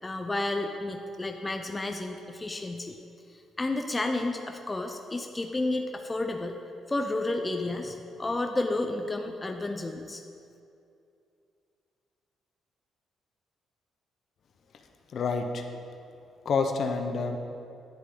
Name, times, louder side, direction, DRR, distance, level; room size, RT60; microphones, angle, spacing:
voice 1, 0.0-3.0 3.3-6.6 6.9-10.2, left 2 dB, 20° left, 4 dB, 0.6 m, -31 dB
voice 2, 15.1-15.7 16.4-17.4, left 4 dB, 60° left, 5 dB, 0.8 m, -28 dB
10.5 x 8.1 x 3.8 m, 2.6 s
cardioid pair, 90°, 0 cm